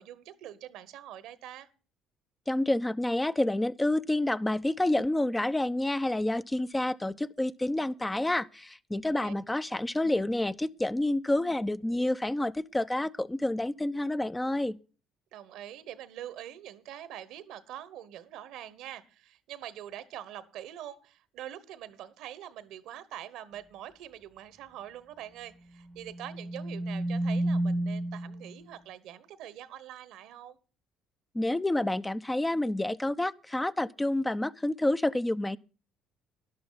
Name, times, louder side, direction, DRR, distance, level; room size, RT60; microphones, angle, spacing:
voice 1, 0.0-1.7 9.0-9.3 15.3-30.6, right 11 dB, 70° right, 1.1 m, -44 dB
voice 2, 2.5-14.8 31.3-35.6, left 1 dB, 15° left, 0.6 m, -29 dB
sound 1, 26.0-28.5, right 1 dB, 25° right, 0.8 m, -31 dB
12.5 x 11.0 x 3.9 m
hypercardioid pair, 60°, 0 cm